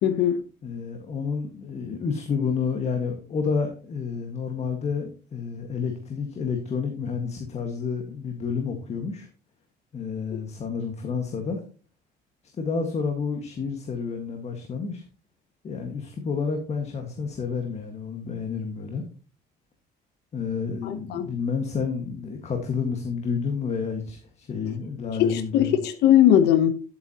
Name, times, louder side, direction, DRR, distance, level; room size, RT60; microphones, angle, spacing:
voice 1, 0.0-0.4 10.3-10.4 20.8-21.3 25.2-26.7, left 10 dB, 80° left, 1.0 m, -20 dB
voice 2, 0.6-9.3 9.9-11.6 12.6-15.0 15.6-19.0 20.3-25.7, left 5 dB, 40° left, 1.7 m, -30 dB
11.0 x 8.4 x 2.9 m
cardioid pair, 110°, 17 cm